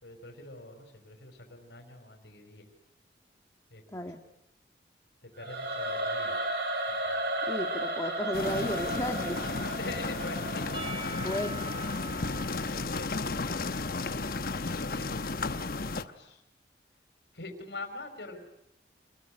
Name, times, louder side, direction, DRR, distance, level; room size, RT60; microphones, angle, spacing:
voice 1, 0.0-2.7 3.7-4.0 5.2-6.4 6.9-7.3 9.8-11.5 12.5-14.1 14.8-16.4 17.3-18.4, left 2 dB, 80° left, 4 dB, 4.9 m, -45 dB
Singing / Musical instrument, 5.4-12.5, right 1 dB, 65° right, 4.3 m, -34 dB
voice 2, 7.5-9.4 11.2-11.7, left 1 dB, 20° left, 3 dB, 1.8 m, -33 dB
sound 1, 8.3-16.0, left 3 dB, 55° left, 1.0 m, -33 dB
Percussion / Church bell, 10.7-14.4, right 2 dB, 25° right, 4.9 m, -44 dB
27.5 x 21.5 x 10.0 m, 0.84 s
head